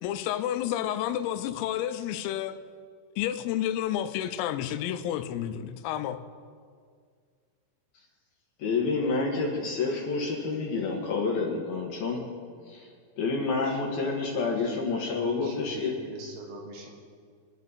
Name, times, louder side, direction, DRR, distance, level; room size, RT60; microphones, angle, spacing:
voice 1, 0.0-2.6 3.2-6.2, left 11 dB, 90° left, 3.4 m, -30 dB
voice 2, 8.6-12.2 12.6-12.9 13.2-15.9, left 4 dB, 60° left, 2.7 m, -28 dB
voice 3, 13.6-14.1 14.6-16.9, right 3 dB, 85° right, 5.0 m, -46 dB
25.5 x 10.5 x 4.1 m
omnidirectional pair, 5.9 m